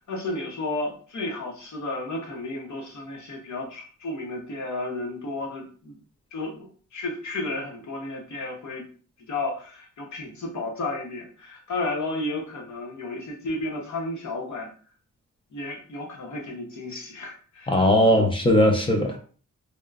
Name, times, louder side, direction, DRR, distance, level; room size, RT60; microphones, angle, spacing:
voice 1, 0.1-6.0 6.3-8.9 9.3-14.7 15.5-18.2, left 2 dB, 60° left, 0 dB, 0.9 m, -33 dB
voice 2, 17.7-19.2, left 1 dB, 15° left, 2 dB, 0.4 m, -19 dB
2.9 x 2.1 x 2.3 m, 0.42 s
wide cardioid pair, 130°, 32 cm